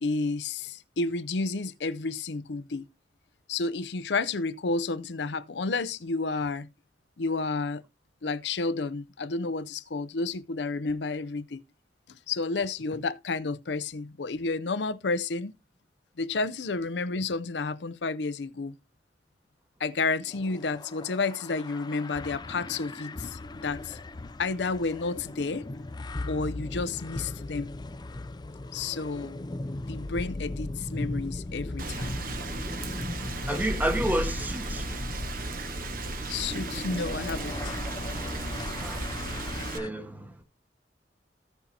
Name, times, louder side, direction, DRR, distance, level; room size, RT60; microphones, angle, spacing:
voice 1, 0.0-2.9 3.5-6.7 7.2-7.8 8.2-11.6 12.1-15.5 16.2-18.8 19.8-24.0 24.4-25.7 26.3-27.7 28.7-29.5 29.9-32.2 36.3-37.8, left 3 dB, 80° left, 0.6 m, -31 dB
sound 1, 20.3-39.9, left 2 dB, 25° left, 0.5 m, -38 dB
Rain, 31.8-39.8, right 2 dB, 55° right, 1.1 m, -35 dB
voice 2, 33.5-34.9 38.8-39.0 39.7-40.4, right 1 dB, 10° right, 1.1 m, -30 dB
16.5 x 5.5 x 2.8 m
head